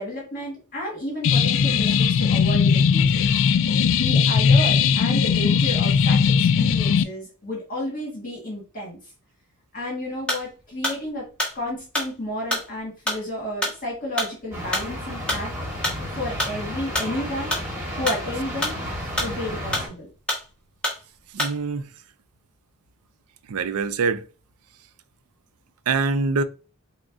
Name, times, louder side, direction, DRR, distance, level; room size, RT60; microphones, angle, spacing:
voice 1, 0.0-3.2 3.8-9.0 9.7-11.3 11.5-15.5 16.2-17.5 18.0-18.7 19.2-20.1, left 1 dB, 40° left, 1.6 m, -31 dB
sound 1, 1.2-7.0, left 6 dB, 60° left, 0.3 m, -19 dB
sound 2, 10.2-10.5 10.8-16.0 16.4-17.7 17.9-19.5 19.7-20.5 20.8-21.0 21.4-21.6, left 1 dB, 5° left, 1.4 m, -27 dB
sound 3, 14.5-19.9, equal, 10° right, 1.5 m, -32 dB
voice 2, 21.3-21.8 23.5-24.2 25.9-26.4, right 4 dB, 75° right, 0.4 m, -24 dB
6.0 x 2.1 x 2.5 m
head